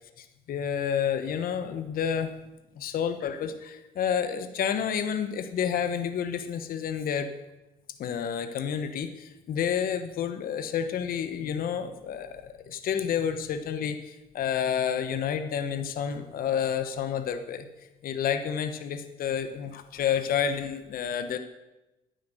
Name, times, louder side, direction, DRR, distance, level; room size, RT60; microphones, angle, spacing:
voice 1, 0.2-2.3 2.8-7.3 8.0-17.7 18.0-21.4, left 8 dB, 60° left, 9 dB, 1.1 m, -30 dB
10.0 x 9.6 x 8.0 m, 1.0 s
cardioid pair, 110°, 17 cm